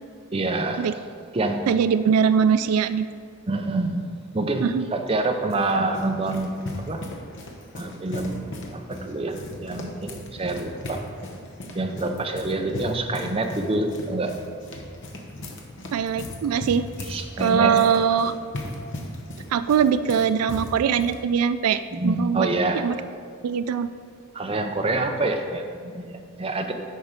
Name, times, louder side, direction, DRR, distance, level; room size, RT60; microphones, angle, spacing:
voice 1, 0.3-0.9 1.3-1.7 3.5-7.1 7.7-11.1 11.7-14.4 17.0-17.8 21.9-22.9 24.3-26.7, right 2 dB, 25° right, 4 dB, 0.5 m, -27 dB
voice 2, 1.7-3.1 4.6-4.9 15.9-16.9 17.4-18.3 19.5-22.5 22.8-23.0 23.4-23.9, right 7 dB, 90° right, 13 dB, 0.3 m, -21 dB
sound 1, 5.1-21.2, left 1 dB, 55° left, 0.9 m, -37 dB
9.8 x 4.5 x 5.1 m, 2.2 s
head